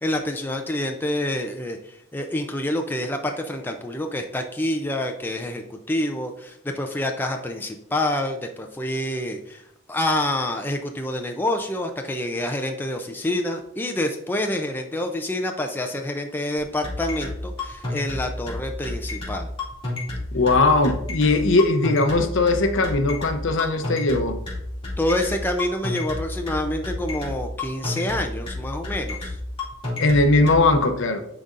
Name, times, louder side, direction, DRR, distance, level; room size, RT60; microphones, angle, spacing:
voice 1, 0.0-9.6 9.9-19.5 25.0-29.4, left 1 dB, 10° left, 4 dB, 0.3 m, -27 dB
sound 1, 16.8-30.6, left 2 dB, 25° left, 2.3 m, -30 dB
voice 2, 20.3-24.4 30.0-31.2, left 2 dB, 60° left, 7 dB, 0.6 m, -19 dB
10.0 x 4.0 x 2.5 m, 0.78 s
head